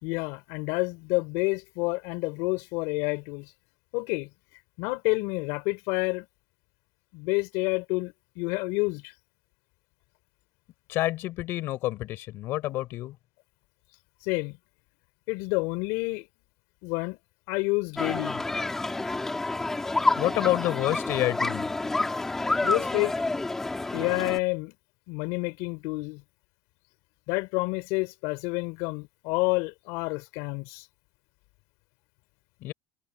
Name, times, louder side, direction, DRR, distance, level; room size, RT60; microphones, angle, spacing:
voice 1, 0.0-3.5 3.9-4.3 4.8-6.3 7.1-9.1 14.2-14.6 15.3-16.3 16.8-17.2 17.5-18.4 22.6-23.1 23.9-24.7 25.1-26.2 27.3-30.9, left 26 dB, 75° left, 5.4 m, -29 dB
voice 2, 10.9-13.2 20.2-21.7 32.6-32.7, left 16 dB, 50° left, 6.7 m, -28 dB
sound 1, 18.0-24.4, left 2 dB, 10° left, 5.5 m, -28 dB
cardioid pair, 180°, 5 cm